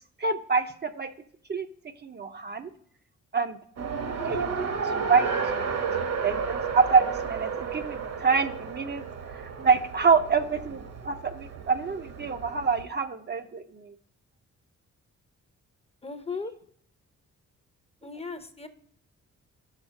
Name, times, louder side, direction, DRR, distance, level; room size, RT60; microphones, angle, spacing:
voice 1, 0.2-1.1 1.5-1.7 2.0-2.7 3.3-3.6 4.2-9.0 9.3-13.9, right 5 dB, 35° right, 7 dB, 0.5 m, -26 dB
Race car auto racing, 3.8-12.8, right 5 dB, 55° right, 1.0 m, -32 dB
voice 2, 16.0-16.5 18.0-18.7, left 4 dB, 20° left, 9 dB, 0.6 m, -36 dB
6.5 x 4.2 x 6.2 m, 0.63 s
cardioid pair, 105°, 30 cm